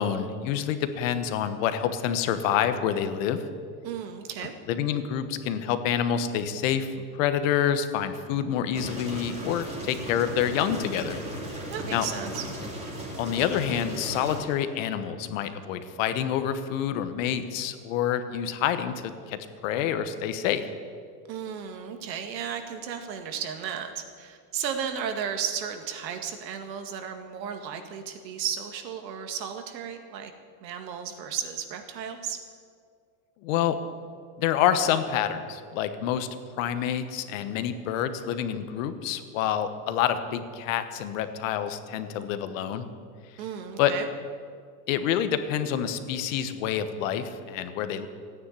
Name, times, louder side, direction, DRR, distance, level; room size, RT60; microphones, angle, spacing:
voice 1, 0.0-3.5 4.7-11.2 11.9-12.1 13.2-20.7 33.4-33.8 34.4-36.3 36.6-42.9 43.8-43.9 44.9-48.1, left 9 dB, 50° left, 10 dB, 1.2 m, -27 dB
voice 2, 3.8-4.6 11.7-12.4 21.3-30.3 30.6-32.4 43.4-44.1, right 8 dB, 85° right, 6 dB, 2.1 m, -34 dB
sound 1, 8.7-14.4, right 1 dB, 15° right, 2.7 m, -36 dB
14.5 x 9.6 x 9.8 m, 2.1 s
supercardioid pair, 170°, 49 cm